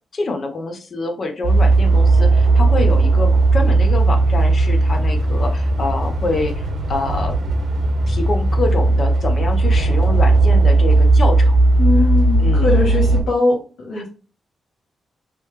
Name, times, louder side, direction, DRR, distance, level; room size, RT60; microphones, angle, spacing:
voice 1, 0.1-7.4 8.1-11.6 12.4-12.7 14.0-14.1, left 3 dB, 45° left, 5 dB, 0.6 m, -26 dB
sound 1, 1.4-13.2, right 2 dB, 65° right, 1.1 m, -16 dB
voice 2, 11.8-13.6 13.9-14.1, left 2 dB, 85° left, -3 dB, 0.9 m, -20 dB
3.1 x 3.0 x 3.2 m, 0.37 s
wide cardioid pair, 140°, 0 cm